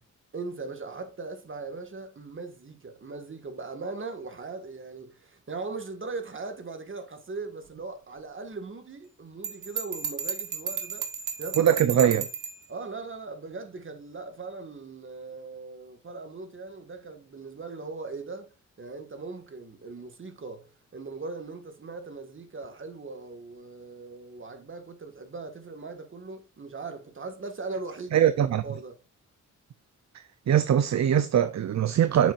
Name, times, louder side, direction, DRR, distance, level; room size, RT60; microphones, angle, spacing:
voice 1, 0.3-11.1 11.4-11.7 12.0-12.2 12.7-29.0, right 3 dB, 40° right, 1.8 m, -39 dB
Bell, 9.4-12.6, right 6 dB, 85° right, 1.7 m, -34 dB
voice 2, 11.6-12.3 28.1-28.6 30.1-32.3, right 9 dB, 60° right, 0.6 m, -22 dB
8.9 x 7.2 x 2.5 m
wide cardioid pair, 115°, 31 cm